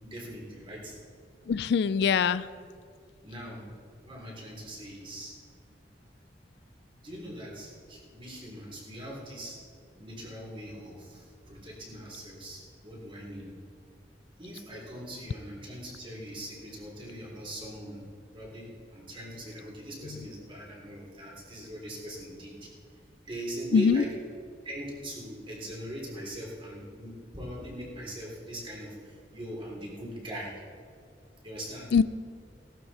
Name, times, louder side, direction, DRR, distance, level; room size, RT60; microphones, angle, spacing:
voice 1, 0.0-1.0 3.2-3.7 4.0-5.3 7.0-9.6 10.0-13.5 14.4-18.0 18.3-22.7 23.3-24.1 24.6-30.6 31.4-31.9, equal, 30° right, -3 dB, 3.4 m, -41 dB
voice 2, 1.5-2.5 20.0-20.3 23.7-24.0 31.9-32.0, left 6 dB, 65° left, 16 dB, 0.3 m, -23 dB
17.5 x 12.0 x 4.2 m, 2.1 s
head